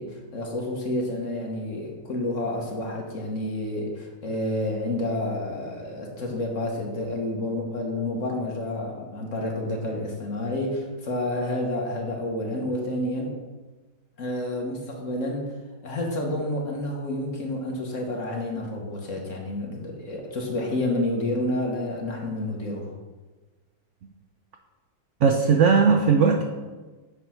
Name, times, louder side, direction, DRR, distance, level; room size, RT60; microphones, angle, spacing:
voice 1, 0.0-13.4 14.2-15.5 15.8-22.9, left 1 dB, 45° left, 0 dB, 1.6 m, -29 dB
voice 2, 25.2-26.4, right 5 dB, 75° right, 4 dB, 0.6 m, -18 dB
8.4 x 4.7 x 5.9 m, 1.3 s
omnidirectional pair, 2.0 m